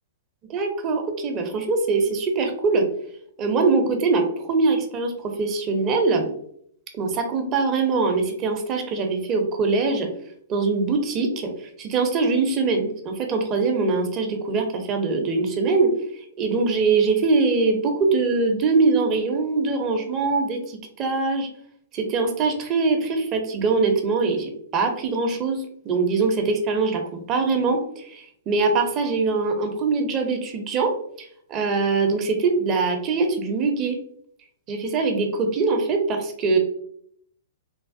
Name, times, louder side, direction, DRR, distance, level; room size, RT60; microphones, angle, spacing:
voice 1, 0.5-2.8 3.4-6.3 6.9-10.1 10.5-11.5 11.8-15.9 16.4-21.5 21.9-30.9 31.2-34.0 34.7-36.6, right 4 dB, 30° right, 4 dB, 0.5 m, -23 dB
3.2 x 2.1 x 2.5 m, 0.67 s
hypercardioid pair, 125°, 0 cm